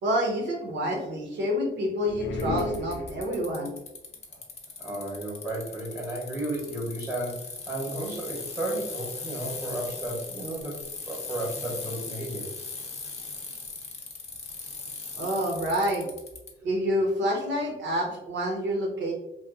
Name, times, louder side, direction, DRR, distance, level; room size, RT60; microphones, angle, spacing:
voice 1, 0.0-3.7 15.2-16.1 16.6-19.1, equal, 65° right, 1 dB, 0.8 m, -28 dB
sound 1, 2.1-3.6, left 2 dB, 80° left, 0.4 m, -32 dB
Bicycle, 2.4-16.5, left 4 dB, 35° left, 0.6 m, -39 dB
voice 2, 4.8-12.5, right 1 dB, 5° right, -3 dB, 0.8 m, -33 dB
3.0 x 2.2 x 2.3 m, 0.90 s
cardioid pair, 90°, 20 cm